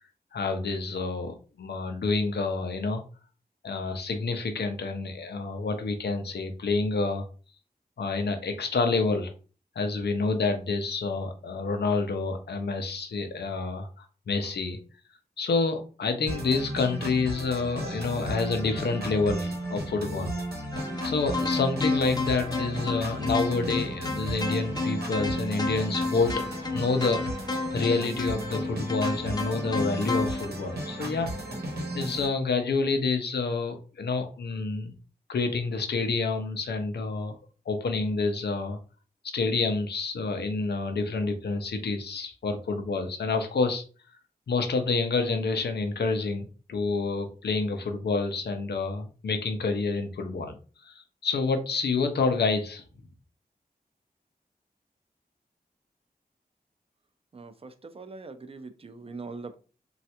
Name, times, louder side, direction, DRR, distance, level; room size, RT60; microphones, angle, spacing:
voice 1, 0.3-3.0 3.6-7.3 8.0-9.3 9.8-14.8 15.4-20.3 21.0-27.4 27.7-31.3 31.9-34.9 35.3-37.3 37.7-38.8 39.3-43.8 44.5-50.6 50.8-52.8, left 3 dB, 90° left, 6 dB, 0.5 m, -28 dB
sound 1, 16.3-32.3, right 1 dB, 70° right, 0.9 m, -35 dB
sound 2, 20.7-30.5, left 3 dB, 25° left, 0.6 m, -32 dB
voice 2, 57.3-59.6, right 3 dB, 35° right, 8 dB, 0.4 m, -42 dB
3.2 x 2.3 x 2.8 m, 0.37 s
wide cardioid pair, 60°, 17 cm